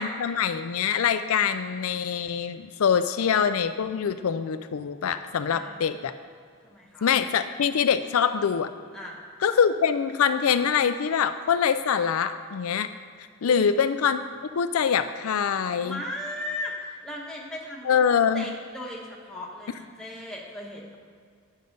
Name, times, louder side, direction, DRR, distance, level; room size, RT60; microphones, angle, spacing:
voice 1, 0.0-6.1 7.0-8.7 9.4-12.9 13.4-14.2 14.5-16.0 17.8-18.5, left 7 dB, 85° left, 10 dB, 0.4 m, -24 dB
voice 2, 5.5-5.8 6.6-7.1 8.9-9.2 13.4-13.7 15.8-18.1 18.3-21.0, left 1 dB, 5° left, -3 dB, 1.2 m, -37 dB
9.8 x 6.4 x 5.3 m, 2.2 s
head